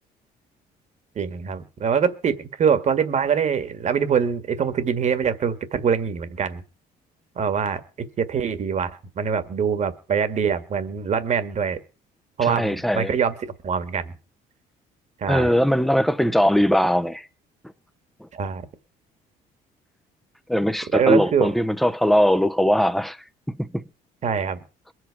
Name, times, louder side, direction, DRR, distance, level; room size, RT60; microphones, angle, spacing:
voice 1, 1.2-6.6 7.4-7.8 8.2-8.9 9.2-11.8 12.4-13.4 13.6-14.1 15.2-15.5 18.3-18.7 20.9-21.5 24.2-24.6, right 7 dB, 45° right, 1.8 m, -23 dB
voice 2, 12.4-13.1 15.3-17.3 20.5-23.2 23.5-23.8, equal, ahead, 0.8 m, -20 dB
22.5 x 8.1 x 4.8 m
cardioid pair, 110°, 17 cm